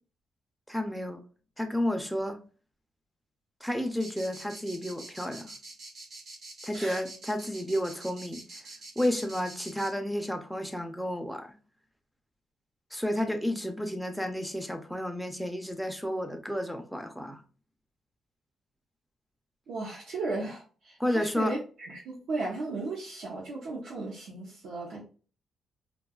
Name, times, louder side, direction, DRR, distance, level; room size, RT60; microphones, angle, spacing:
voice 1, 0.7-1.2 1.6-2.4 3.6-5.5 6.6-8.6 9.0-11.5 12.9-17.4 21.0-21.5, equal, ahead, 6 dB, 0.4 m, -31 dB
sound 1, 4.0-9.9, right 2 dB, 60° right, 1.2 m, -45 dB
voice 2, 19.7-25.0, right 3 dB, 85° right, -5 dB, 0.7 m, -35 dB
2.7 x 2.2 x 2.2 m, 0.38 s
cardioid pair, 120°, 0 cm